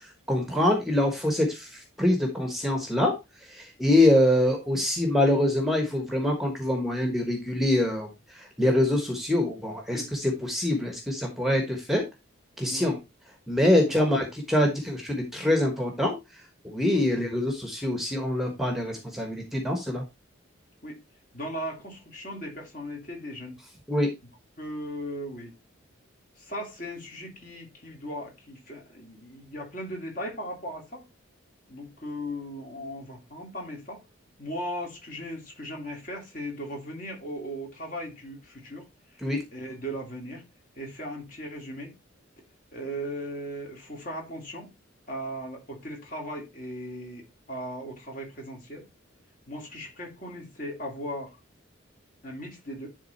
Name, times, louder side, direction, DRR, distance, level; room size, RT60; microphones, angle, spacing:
voice 1, 0.3-3.1 3.5-8.1 8.3-12.0 12.6-13.0 13.5-16.2 16.6-20.0 23.9-24.1 39.2-39.4, left 1 dB, ahead, 1.2 m, -24 dB
voice 2, 21.3-23.6 24.6-25.5 26.4-31.0 31.7-34.0 34.4-38.8 39.1-40.4 40.8-41.9 42.7-44.7 45.1-48.9 49.5-51.4 52.2-52.9, equal, 40° left, 2.9 m, -37 dB
10.5 x 3.7 x 4.2 m
head